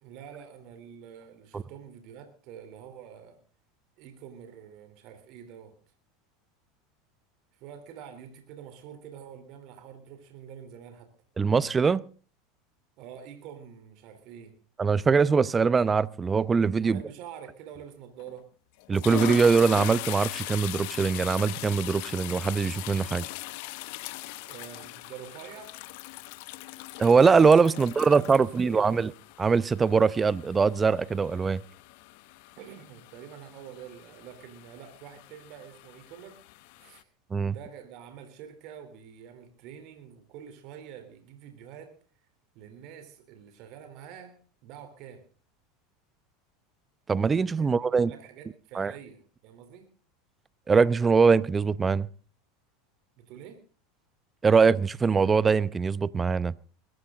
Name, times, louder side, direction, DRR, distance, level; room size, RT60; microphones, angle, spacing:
voice 1, 0.0-3.4 4.0-5.7 7.5-11.1 13.0-14.6 16.8-18.5 24.5-25.8 28.0-29.0 32.6-36.4 36.8-37.1 37.5-42.0 42.6-45.3 47.6-49.9 53.2-53.6, right 8 dB, 60° right, 3.6 m, -46 dB
voice 2, 11.4-12.0 14.8-17.0 18.9-23.3 27.0-29.1 29.4-31.6 37.3-37.5 47.1-48.1 48.7-48.9 50.7-52.1 54.4-56.5, right 5 dB, 20° right, 0.7 m, -22 dB
sound 1, 18.2-18.4 18.8-37.0, left 19 dB, 65° left, 1.0 m, -40 dB
21.5 x 14.5 x 3.9 m
hypercardioid pair, 100°, 0 cm